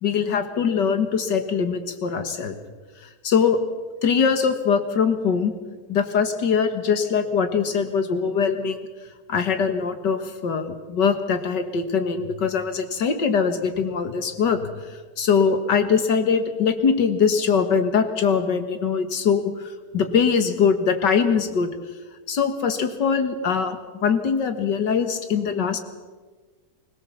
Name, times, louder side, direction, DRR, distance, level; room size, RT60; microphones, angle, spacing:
voice 1, 0.0-2.5 3.2-3.6 4.0-5.5 5.9-8.8 9.3-14.7 15.2-21.7 22.3-25.8, left 6 dB, 85° left, 8 dB, 2.3 m, -22 dB
25.0 x 17.0 x 7.2 m, 1.4 s
omnidirectional pair, 1.8 m